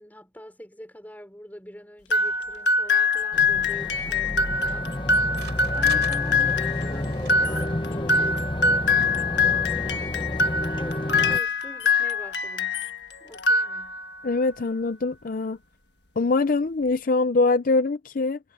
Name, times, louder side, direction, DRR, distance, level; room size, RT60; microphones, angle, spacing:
voice 1, 0.0-5.5 5.7-10.4 10.8-12.9 13.2-14.1, equal, 10° left, 5.7 m, -44 dB
sound 1, 2.1-13.0 13.3-14.2, left 3 dB, 70° left, 1.4 m, -24 dB
sound 2, 3.3-11.4, left 1 dB, 25° left, 1.1 m, -30 dB
sound 3, 3.8-10.6, right 6 dB, 70° right, 6.5 m, -48 dB
voice 2, 14.2-15.6 16.2-18.4, left 3 dB, 50° left, 0.5 m, -23 dB
head